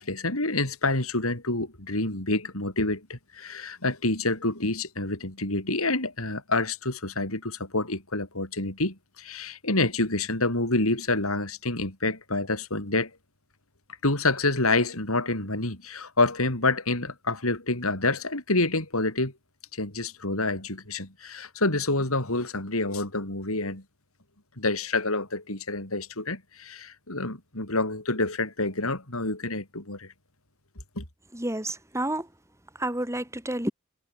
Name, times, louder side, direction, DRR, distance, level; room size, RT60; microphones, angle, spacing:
voice 1, 0.0-13.1 14.0-19.3 19.7-23.8 24.6-30.1 31.0-31.1, left 2 dB, 75° left, 6.0 m, -27 dB
voice 2, 31.3-32.2 32.8-33.7, right 1 dB, 15° right, 4.5 m, -29 dB
head